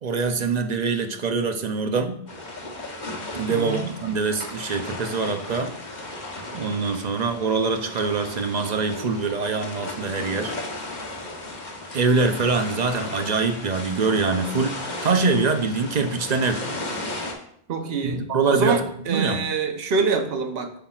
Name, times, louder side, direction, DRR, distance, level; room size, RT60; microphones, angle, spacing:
voice 1, 0.0-2.2 3.3-5.8 6.5-10.6 11.9-16.7 18.0-18.8 19.1-19.4, right 4 dB, 50° right, 7 dB, 0.6 m, -24 dB
sound 1, 2.3-17.3, left 2 dB, 45° left, 1.1 m, -35 dB
voice 2, 3.5-4.0 17.7-20.7, right 5 dB, 70° right, 6 dB, 1.0 m, -25 dB
8.1 x 5.7 x 2.4 m, 0.66 s
omnidirectional pair, 1.1 m